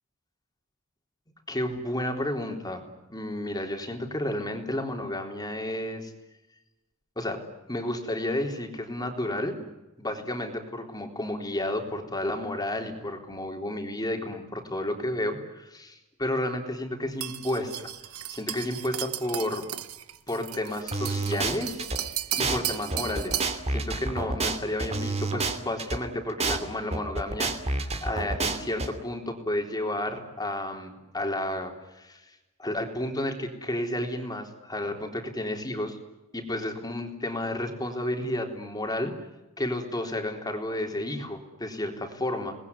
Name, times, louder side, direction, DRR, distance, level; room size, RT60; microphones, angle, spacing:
voice 1, 1.5-6.1 7.2-7.4 7.7-9.6 10.0-17.9 18.3-19.6 20.3-21.8 22.4-23.4 23.7-32.2 32.6-36.0 36.3-39.1 39.6-42.6, left 1 dB, 20° left, 3 dB, 3.8 m, -31 dB
sound 1, 17.2-23.6, right 12 dB, 80° right, 1.5 m, -35 dB
sound 2, 20.9-22.0 22.4-22.6 22.9-26.0 26.4-26.6 26.9-28.9, right 3 dB, 30° right, 2.8 m, -28 dB
27.5 x 20.0 x 9.8 m, 1.0 s
head